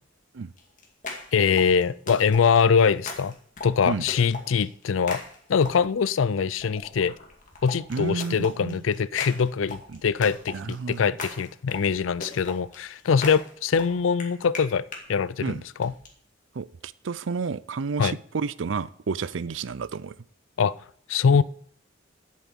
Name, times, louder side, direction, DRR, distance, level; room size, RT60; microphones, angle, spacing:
sound 1, 0.6-6.0 6.6-15.0 15.8-16.1, left 3 dB, 40° left, 2.2 m, -40 dB
voice 1, 1.3-3.3 3.6-5.2 5.5-7.1 7.6-15.9 18.0-18.2 20.6-20.8 21.1-21.4, left 6 dB, 90° left, 0.4 m, -23 dB
voice 2, 7.9-8.8 9.9-10.0 10.5-11.0 15.4-15.6 16.5-20.2, right 5 dB, 75° right, 0.5 m, -31 dB
8.2 x 7.5 x 8.6 m
head